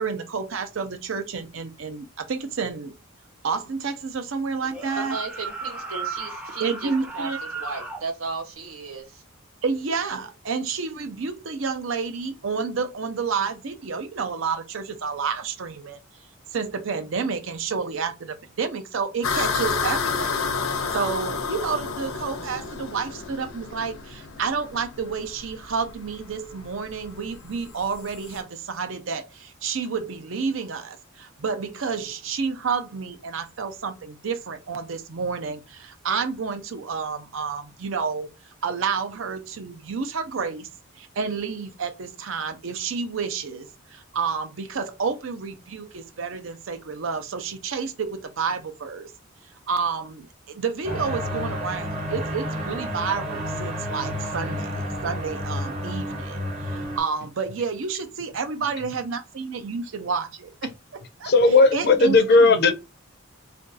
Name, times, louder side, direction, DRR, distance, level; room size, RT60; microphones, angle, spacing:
voice 1, 0.0-2.9 3.4-5.2 6.6-7.4 9.6-16.0 16.5-38.3 38.6-40.7 41.0-49.1 49.7-54.7 55.0-61.3 61.7-62.7, right 5 dB, 65° right, 0.6 m, -30 dB
sound 1, 4.6-8.0, right 4 dB, 5° right, 0.4 m, -35 dB
voice 2, 5.0-7.3 7.5-9.2, right 4 dB, 90° right, 1.0 m, -35 dB
sound 2, 19.2-28.4, left 5 dB, 85° left, 0.7 m, -30 dB
sound 3, 50.8-57.0, equal, 30° right, 0.9 m, -30 dB
voice 3, 61.2-62.7, left 3 dB, 50° left, 0.5 m, -16 dB
2.5 x 2.3 x 3.9 m
head